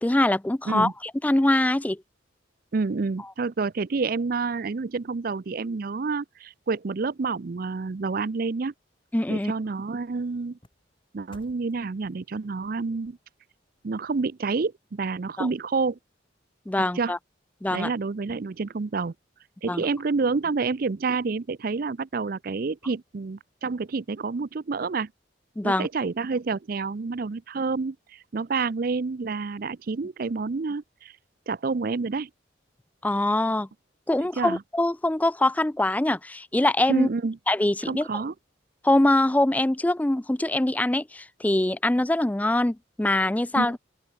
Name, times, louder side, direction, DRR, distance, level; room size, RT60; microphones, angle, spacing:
voice 1, 0.0-0.9 1.2-2.0 9.1-9.5 15.4-15.5 16.7-17.2 17.6-17.9 19.7-19.8 25.6-25.9 33.0-33.7 34.1-37.1 37.5-38.1 38.8-43.8, left 1 dB, 10° left, 0.3 m, -23 dB
voice 2, 2.7-8.7 9.3-10.6 11.1-13.2 13.8-16.0 16.9-17.1 17.7-19.1 19.6-25.1 25.6-31.1 31.5-32.3 34.4-34.6 36.9-37.4 37.9-38.3 43.6-43.7, right 4 dB, 50° right, 0.5 m, -28 dB
sound 1, 8.5-14.8 15.3-15.4, left 1 dB, 25° left, 5.7 m, -61 dB
open air
head